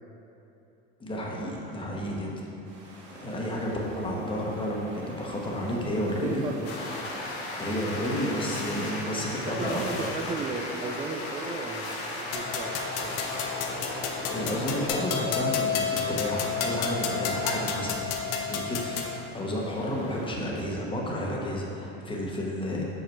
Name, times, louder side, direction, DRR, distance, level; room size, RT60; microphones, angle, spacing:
voice 1, 1.0-2.3 3.1-6.4 7.6-10.0 14.3-22.8, equal, 15° left, -3 dB, 1.1 m, -31 dB
sound 1, 2.6-20.3, right 2 dB, 55° right, 1.4 m, -46 dB
voice 2, 6.2-7.2 8.8-8.9 9.4-13.2, right 3 dB, 15° right, 0 dB, 0.3 m, -35 dB
sound 2, 6.6-14.9, left 2 dB, 85° left, 1.2 m, -36 dB
sound 3, 12.3-19.2, left 6 dB, 55° left, 0.8 m, -31 dB
5.8 x 5.3 x 4.5 m, 3.0 s
supercardioid pair, 115°, 31 cm